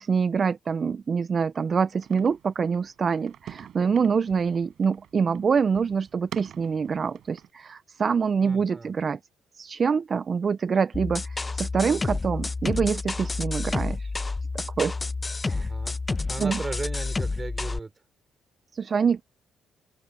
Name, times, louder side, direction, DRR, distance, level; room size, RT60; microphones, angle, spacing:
voice 1, 0.0-9.2 9.5-14.1 14.8-14.9 15.5-15.7 16.4-16.6 18.7-19.2, right 6 dB, 45° right, 0.5 m, -25 dB
sound 1, 2.0-7.5, right 10 dB, 70° right, 5.3 m, -46 dB
voice 2, 8.4-8.9 15.5-16.0 16.3-17.9, right 3 dB, 25° right, 4.5 m, -36 dB
sound 2, 10.9-17.8, left 3 dB, 25° left, 0.7 m, -29 dB
cardioid pair, 90°, 0 cm